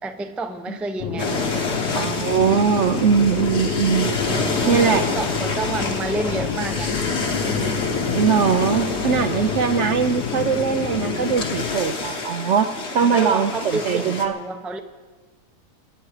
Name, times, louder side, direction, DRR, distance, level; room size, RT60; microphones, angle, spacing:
voice 1, 0.0-1.8 4.5-7.0 13.0-14.8, right 3 dB, ahead, 6 dB, 0.5 m, -29 dB
sound 1, 1.0-11.8, left 6 dB, 80° left, 1.4 m, -28 dB
sound 2, 1.2-14.3, left 3 dB, 45° left, 1.6 m, -28 dB
voice 2, 1.9-4.2 4.7-5.1 8.1-14.4, right 7 dB, 60° right, 9 dB, 0.8 m, -21 dB
26.5 x 10.0 x 4.8 m, 1.3 s
omnidirectional pair, 1.6 m